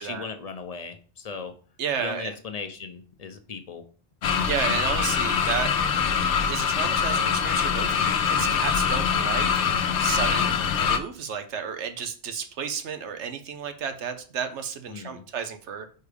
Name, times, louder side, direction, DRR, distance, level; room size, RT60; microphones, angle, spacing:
voice 1, 0.0-1.5 2.0-3.9 4.3-4.5 14.9-15.2, left 5 dB, 40° left, 8 dB, 0.7 m, -37 dB
voice 2, 1.8-2.3 4.5-5.7 6.5-9.5 10.0-15.9, right 7 dB, 85° right, 8 dB, 1.1 m, -32 dB
sound 1, 4.2-11.0, left 7 dB, 85° left, 1.0 m, -24 dB
4.7 x 4.5 x 5.0 m, 0.40 s
omnidirectional pair, 1.2 m